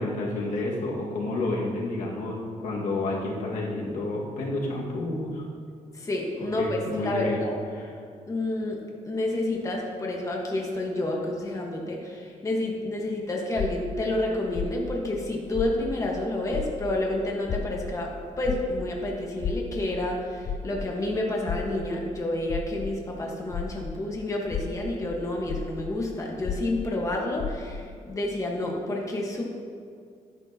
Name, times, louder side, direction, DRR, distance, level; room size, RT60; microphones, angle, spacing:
voice 1, 0.0-5.4 6.6-7.4 7.7-7.9, left 2 dB, 80° left, -3 dB, 2.0 m, -30 dB
voice 2, 5.9-7.6 8.3-8.8 9.0-29.5, left 1 dB, 25° left, -1 dB, 1.4 m, -29 dB
sound 1, 13.6-16.2 16.5-24.0 24.4-27.9, left 6 dB, 45° left, 0.4 m, -34 dB
12.0 x 10.0 x 2.9 m, 2.2 s
cardioid pair, 115°, 13 cm